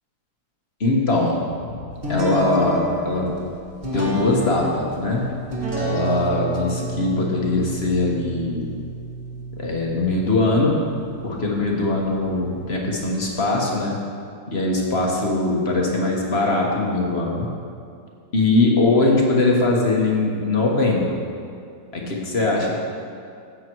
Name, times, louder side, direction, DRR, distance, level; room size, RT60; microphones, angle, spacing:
voice 1, 0.8-1.4 1.7-1.8 2.1-3.3 3.9-5.3 5.7-8.7 9.6-10.8 11.2-14.0 14.5-17.5 18.3-21.2 21.9-22.8, left 2 dB, 35° left, -1 dB, 1.5 m, -21 dB
sound 1, 2.0-13.5, right 1 dB, 30° right, 1.8 m, -31 dB
14.0 x 7.6 x 4.7 m, 2.4 s
omnidirectional pair, 2.2 m